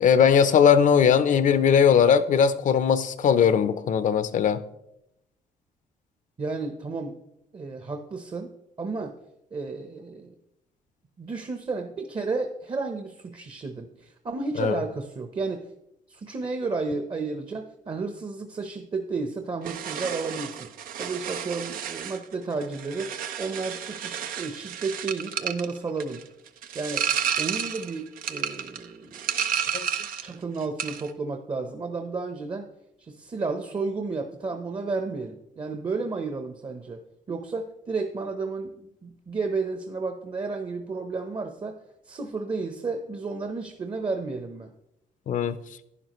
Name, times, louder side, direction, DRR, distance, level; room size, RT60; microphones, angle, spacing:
voice 1, 0.0-4.6 14.6-14.8 29.7-29.9 45.3-45.6, left 7 dB, 60° left, 0.7 m, -19 dB
voice 2, 6.4-7.2 7.5-8.5 8.8-9.1 9.5-10.3 11.2-15.7 16.1-20.7 21.0-26.2 26.7-27.1 27.4-29.3 30.2-32.7 33.0-37.0 37.3-38.7 39.0-41.8 42.1-44.7, right 4 dB, 35° right, 0.9 m, -32 dB
sound 1, 19.6-30.3 30.6-31.1, right 8 dB, 80° right, 0.7 m, -31 dB
11.0 x 10.0 x 3.1 m
cardioid pair, 80°, 15 cm